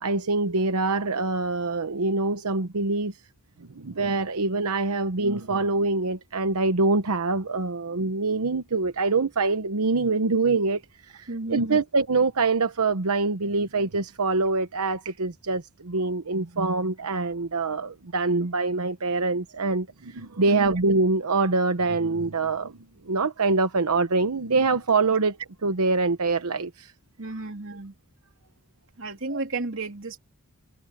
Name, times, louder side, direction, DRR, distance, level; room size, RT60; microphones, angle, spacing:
voice 1, 0.0-3.1 3.7-22.8 23.0-26.9 29.3-29.4, right 3 dB, 90° right, 1.0 m, -25 dB
voice 2, 11.3-11.8 20.4-20.7 27.2-27.9 29.0-30.2, right 2 dB, 60° right, 3.1 m, -33 dB
head